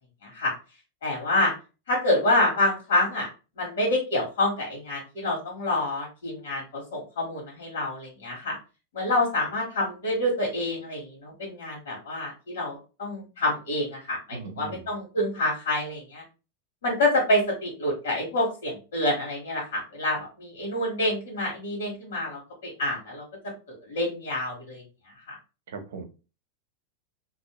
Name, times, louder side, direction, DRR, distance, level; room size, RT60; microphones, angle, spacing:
voice 1, 1.0-1.5 1.9-3.3 3.6-8.6 8.9-16.2 16.8-23.2 23.7-24.8 25.3-25.4, left 1 dB, 80° left, -3 dB, 1.2 m, -27 dB
voice 2, 14.3-14.8 25.7-26.0, right 5 dB, 80° right, 5 dB, 0.7 m, -38 dB
2.5 x 2.0 x 2.8 m, 0.32 s
supercardioid pair, 145°, 0 cm